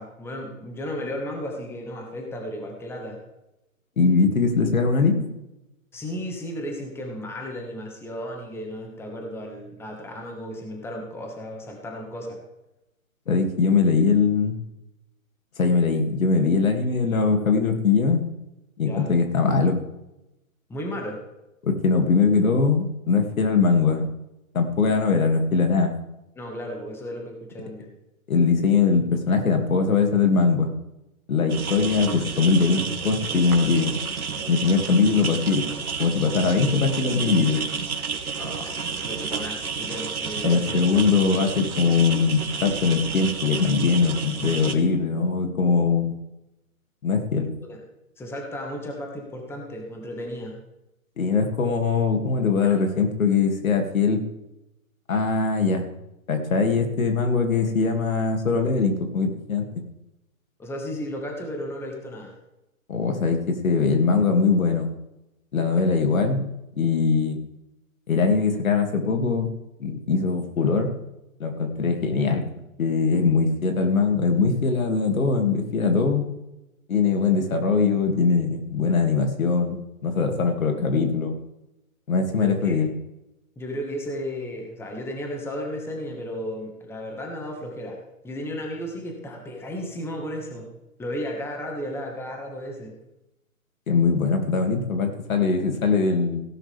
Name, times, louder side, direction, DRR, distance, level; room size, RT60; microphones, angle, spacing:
voice 1, 0.0-3.2 5.9-12.4 18.8-19.1 20.7-21.2 26.3-27.9 38.4-40.8 47.6-47.8 48.2-50.6 52.6-52.9 60.6-62.3 82.4-82.8 83.5-88.0 88.2-90.7 91.0-92.9, equal, 5° left, 1 dB, 1.8 m, -34 dB
voice 2, 4.0-5.3 13.3-14.6 15.6-18.3 18.8-19.8 21.6-24.1 24.5-26.0 28.3-30.7 31.3-33.9 34.5-35.6 36.0-37.6 40.4-46.1 47.0-47.5 51.2-54.3 55.1-55.8 56.3-59.6 62.9-64.9 65.5-66.5 66.8-67.4 68.1-69.5 69.8-70.9 71.4-72.4 72.8-76.2 76.9-81.3 82.1-82.9 93.9-96.4, left 4 dB, 70° left, 4 dB, 2.7 m, -21 dB
sound 1, 31.5-44.7, right 5 dB, 85° right, 1.9 m, -31 dB
17.0 x 11.5 x 3.6 m, 0.92 s
hypercardioid pair, 140°, 42 cm